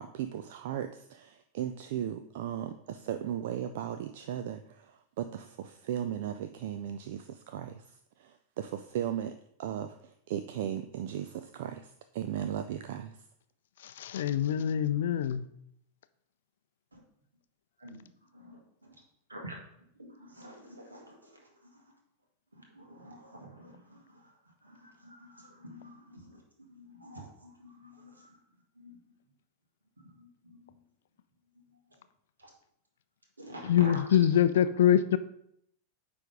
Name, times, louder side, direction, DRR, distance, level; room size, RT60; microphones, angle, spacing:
voice 1, 0.0-13.2, right 10 dB, 55° right, 0.4 m, -37 dB
voice 2, 13.8-15.5 33.6-35.2, left 10 dB, 60° left, 0.4 m, -25 dB
voice 3, 17.8-19.0 19.3-19.6 20.0-21.8 22.5-24.3 24.6-26.4 26.7-28.4 28.7-29.0 30.0-30.8 32.4-32.5 33.4-34.1 34.8-34.9, equal, 80° right, 1.7 m, -48 dB
9.1 x 3.5 x 5.1 m
figure-of-eight pair, 90°, 0 cm